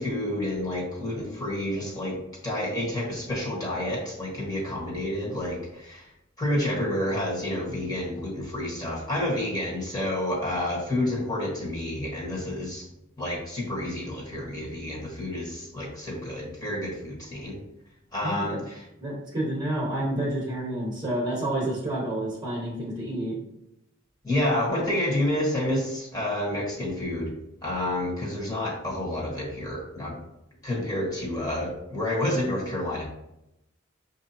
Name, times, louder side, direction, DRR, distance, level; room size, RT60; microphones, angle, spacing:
voice 1, 0.0-6.1 6.4-12.9 13.2-17.6 18.1-18.8 24.2-27.3 27.6-30.1 30.6-33.0, left 1 dB, 20° left, -5 dB, 1.3 m, -29 dB
voice 2, 18.2-18.6 19.0-23.4, right 1 dB, 25° right, -6 dB, 1.0 m, -29 dB
6.1 x 2.7 x 2.7 m, 0.87 s
head